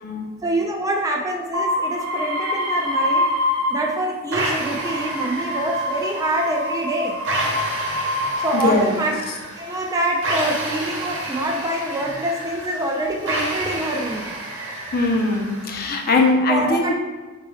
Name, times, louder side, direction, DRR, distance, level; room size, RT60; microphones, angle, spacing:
voice 1, 0.4-3.3 3.7-7.2 8.4-9.1 9.5-14.3 16.5-16.9, right 1 dB, 15° right, 0 dB, 0.3 m, -25 dB
sound 1, 1.5-4.1 4.4-9.0 9.7-10.3, left 1 dB, 85° right, 0.7 m, -26 dB
sound 2, 4.3-16.3, right 1 dB, 60° right, 0.9 m, -30 dB
voice 2, 8.5-9.0 14.9-16.9, left 2 dB, 45° left, 2 dB, 0.6 m, -20 dB
3.9 x 3.7 x 3.1 m, 1.3 s
head